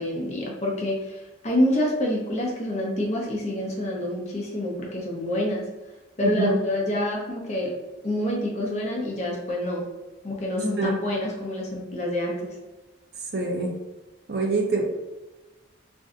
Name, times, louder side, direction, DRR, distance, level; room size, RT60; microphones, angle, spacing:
voice 1, 0.0-5.6 6.2-7.7 8.0-9.8 10.2-12.4, left 1 dB, 35° left, -2 dB, 0.7 m, -27 dB
voice 2, 6.2-6.6 10.8-10.9 13.3-13.7 14.3-14.8, right 3 dB, 55° right, 1 dB, 0.6 m, -25 dB
2.6 x 2.3 x 3.8 m, 1.1 s
head